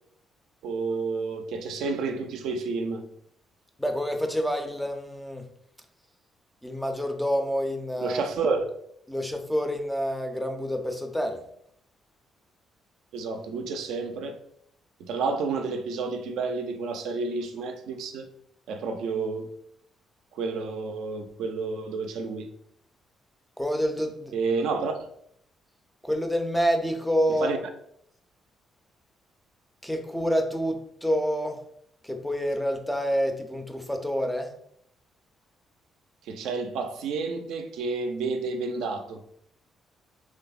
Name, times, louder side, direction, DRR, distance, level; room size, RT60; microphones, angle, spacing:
voice 1, 0.6-3.1 8.0-8.6 13.1-14.4 15.0-18.3 18.7-19.5 20.3-22.5 24.3-24.9 27.4-27.6 36.2-39.2, right 4 dB, 85° right, 0.3 m, -30 dB
voice 2, 3.8-5.5 6.6-8.5 9.1-11.4 23.6-24.3 26.0-27.5 29.8-31.6 32.0-34.5, equal, ahead, 0.4 m, -28 dB
3.2 x 2.0 x 2.3 m
cardioid pair, 90°, 0 cm